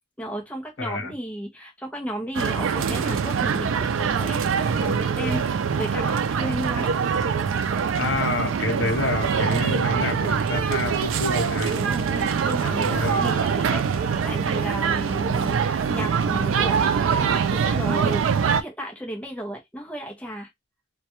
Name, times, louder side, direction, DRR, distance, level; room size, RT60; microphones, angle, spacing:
voice 1, 0.2-5.4 5.7-6.9 11.8-18.2 18.6-20.5, equal, 5° left, 0.6 m, -34 dB
voice 2, 0.8-1.1 7.9-11.8 12.8-13.3, left 2 dB, 70° left, 0.8 m, -28 dB
sound 1, 2.3-18.6, right 6 dB, 85° right, 0.4 m, -24 dB
2.2 x 2.2 x 2.9 m
head